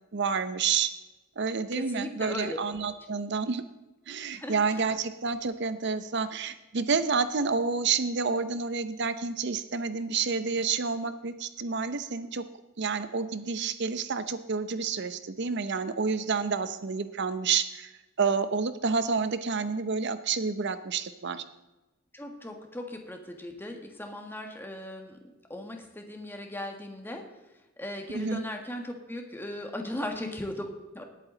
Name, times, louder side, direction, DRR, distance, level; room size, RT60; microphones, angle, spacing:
voice 1, 0.1-0.9 1.4-3.6 4.1-12.4 12.8-17.9 18.2-21.4 28.1-28.4, right 5 dB, 55° right, 12 dB, 0.7 m, -29 dB
voice 2, 1.7-2.6 4.3-5.0 22.1-25.2 25.5-27.2 27.8-31.0, left 1 dB, 10° left, 3 dB, 1.6 m, -38 dB
19.5 x 8.5 x 3.9 m, 1.1 s
head